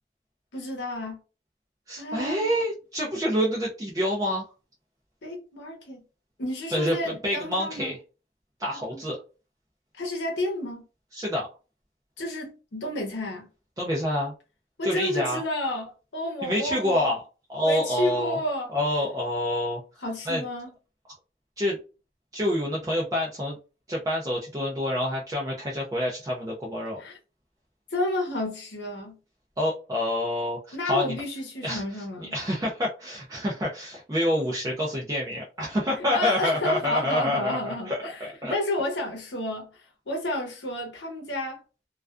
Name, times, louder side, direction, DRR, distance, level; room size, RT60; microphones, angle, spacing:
voice 1, 0.5-1.2 1.9-2.5 5.2-6.0 6.4-7.9 8.9-9.0 9.9-10.9 12.2-13.5 14.8-17.1 17.6-18.7 20.0-20.7 27.0-27.2 27.9-29.2 30.7-32.3 36.0-41.6, left 1 dB, 90° left, 0.8 m, -31 dB
voice 2, 1.9-4.5 6.7-8.0 8.6-9.2 11.1-11.5 13.8-14.3 14.8-15.4 16.4-17.2 17.5-18.4 18.7-20.4 21.6-21.8 22.3-23.6 23.9-27.0 29.6-31.1 31.6-38.5, left 1 dB, 20° right, 0.4 m, -27 dB
2.3 x 2.2 x 2.4 m
head